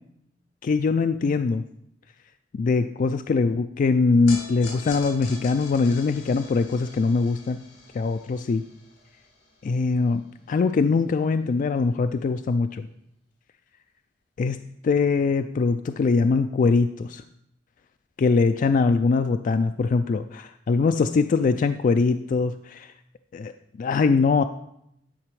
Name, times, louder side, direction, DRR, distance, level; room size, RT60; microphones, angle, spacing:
voice 1, 0.6-1.6 2.5-7.6 7.9-8.6 9.6-12.9 14.4-17.2 18.2-22.9 23.3-23.5 23.8-24.4, left 4 dB, 45° left, 9 dB, 0.3 m, -22 dB
sound 1, 4.3-10.7, left 3 dB, 70° left, 3.5 m, -43 dB
10.5 x 5.0 x 4.8 m, 0.76 s
head